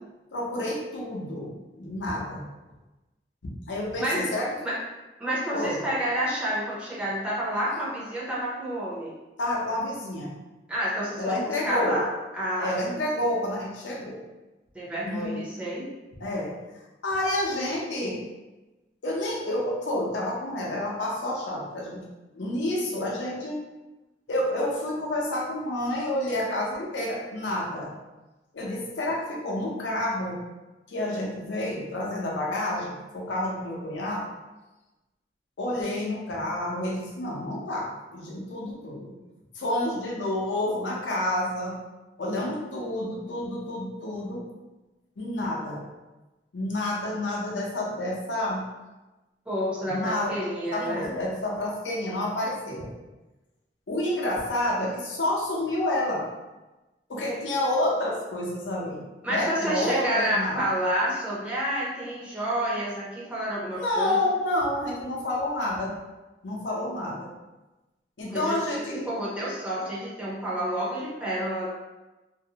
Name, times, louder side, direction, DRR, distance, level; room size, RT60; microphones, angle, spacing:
voice 1, 0.3-2.4 3.7-4.5 5.5-5.8 9.4-10.3 11.2-12.0 12.6-14.2 15.0-15.4 16.2-16.6 17.0-18.2 19.0-22.0 22.3-23.6 24.3-28.0 28.5-30.4 30.9-34.3 35.6-39.1 39.5-41.8 42.2-44.4 45.2-45.8 46.5-48.6 49.9-50.5 50.7-52.9 53.9-56.3 57.1-59.0 59.3-60.6 63.7-66.0 66.4-67.3 68.2-69.1, left 1 dB, 85° left, -2 dB, 0.6 m, -29 dB
voice 2, 4.0-4.3 4.6-4.8 5.2-9.1 10.7-12.7 14.7-15.9 49.5-51.1 59.2-64.2 68.3-68.6 68.9-71.7, equal, 5° right, -7 dB, 0.6 m, -29 dB
2.5 x 2.0 x 2.7 m, 1.1 s
head